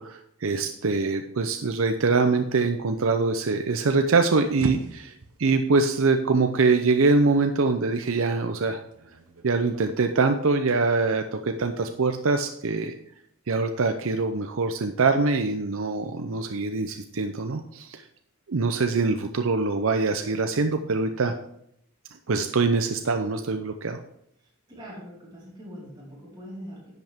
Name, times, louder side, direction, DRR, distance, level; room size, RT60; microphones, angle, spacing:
voice 1, 0.0-5.1 5.4-8.8 9.4-12.9 13.5-18.1 18.5-21.3 22.3-24.0, right 4 dB, 65° right, 7 dB, 0.6 m, -24 dB
sound 1, 3.9-9.9, right 2 dB, 80° right, 0.9 m, -41 dB
voice 2, 24.4-26.9, equal, 20° right, -7 dB, 4.5 m, -42 dB
10.5 x 8.0 x 3.6 m, 0.72 s
head